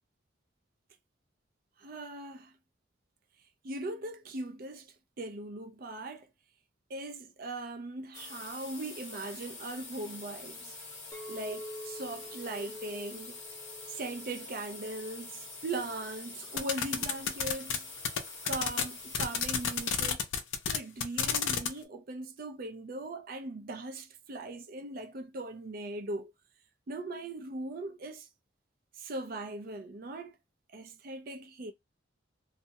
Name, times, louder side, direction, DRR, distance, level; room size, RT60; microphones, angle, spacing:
voice 1, 1.8-2.5 3.6-6.3 6.9-10.7 11.3-13.4 13.9-17.9 18.4-20.3 20.7-26.3 26.9-28.3 28.9-30.3 30.7-31.7, right 2 dB, 45° right, 0.4 m, -39 dB
sound 1, 8.1-20.0, left 3 dB, 40° left, 1.0 m, -46 dB
Chink clink, 11.1-15.4 15.9-16.3, left 1 dB, 15° left, 0.6 m, -47 dB
sound 2, 16.6-17.8 18.0-18.2 18.5-18.8 19.1-21.7, left 8 dB, 75° left, 0.5 m, -29 dB
2.4 x 2.0 x 2.7 m
head